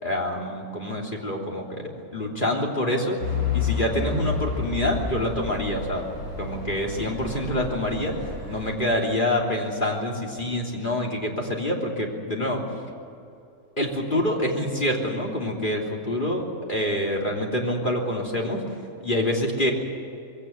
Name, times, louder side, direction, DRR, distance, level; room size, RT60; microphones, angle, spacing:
voice 1, 0.0-3.2 3.5-6.0 6.4-12.6 13.8-18.6 19.0-19.7, left 1 dB, 40° left, -1 dB, 3.4 m, -26 dB
Truck / Idling, 3.2-8.7, left 5 dB, 55° left, 6.5 m, -30 dB
21.5 x 17.0 x 9.2 m, 2.6 s
omnidirectional pair, 1.4 m